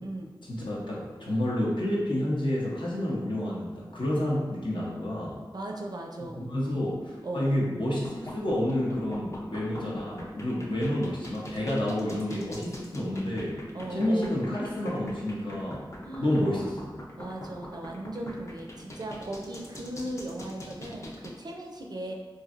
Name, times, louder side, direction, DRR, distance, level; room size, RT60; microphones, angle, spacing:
voice 1, 0.4-5.4 6.2-13.6 13.9-15.8 16.2-17.0, left 1 dB, 65° left, -5 dB, 0.7 m, -29 dB
voice 2, 5.5-6.5 6.7-6.8 7.2-7.6 13.7-14.4 16.0-16.4 17.2-22.1, right 1 dB, 50° right, 1 dB, 0.4 m, -37 dB
sound 1, 7.9-21.3, left 1 dB, 35° left, 0.5 m, -42 dB
3.1 x 2.6 x 2.4 m, 1.3 s
wide cardioid pair, 55°, 9 cm